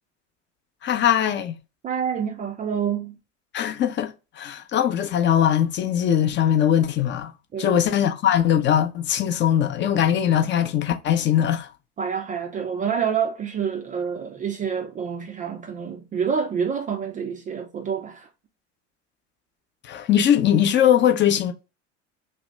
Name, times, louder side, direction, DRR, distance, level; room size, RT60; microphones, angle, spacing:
voice 1, 0.8-1.6 3.5-7.3 7.6-11.7 19.8-21.5, left 10 dB, 30° left, 0.5 m, -21 dB
voice 2, 1.8-3.2 7.5-7.7 12.0-18.3, right 7 dB, 20° right, 0.4 m, -27 dB
2.7 x 2.1 x 3.3 m
hypercardioid pair, 75°, 37 cm